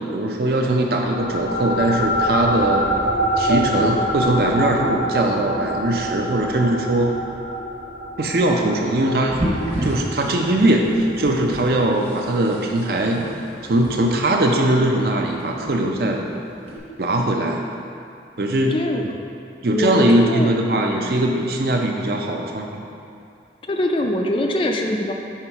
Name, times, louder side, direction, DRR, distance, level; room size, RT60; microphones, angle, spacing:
voice 1, 0.0-2.9 3.4-7.1 8.2-9.4 9.8-13.2 13.6-16.3 17.0-17.6 18.4-18.7 19.6-22.8, right 1 dB, 55° right, 1 dB, 0.5 m, -20 dB
sound 1, 1.0-11.8, equal, 90° left, 0.9 m, -26 dB
sound 2, 9.3-16.8, right 1 dB, 35° right, 1.0 m, -32 dB
voice 2, 18.7-19.0 19.7-20.6 23.7-25.1, left 1 dB, 30° left, 2 dB, 0.3 m, -22 dB
5.7 x 3.8 x 4.5 m, 2.5 s
head